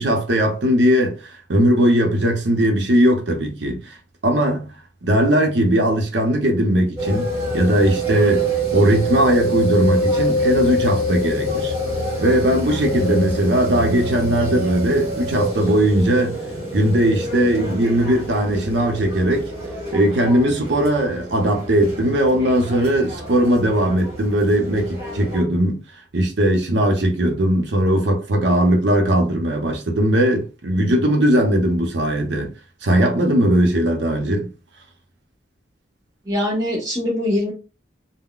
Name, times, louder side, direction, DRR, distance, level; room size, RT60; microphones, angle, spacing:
voice 1, 0.0-4.0 4.2-4.7 5.0-7.3 7.5-8.5 8.7-11.7 12.2-16.4 16.7-19.5 19.9-25.8 26.1-32.5 32.8-34.5, right 1 dB, 80° right, 0.7 m, -19 dB
sound 1, 7.0-25.4, equal, 35° right, 1.4 m, -26 dB
voice 2, 36.2-37.5, left 1 dB, 20° right, 1.3 m, -22 dB
3.7 x 2.1 x 2.4 m
head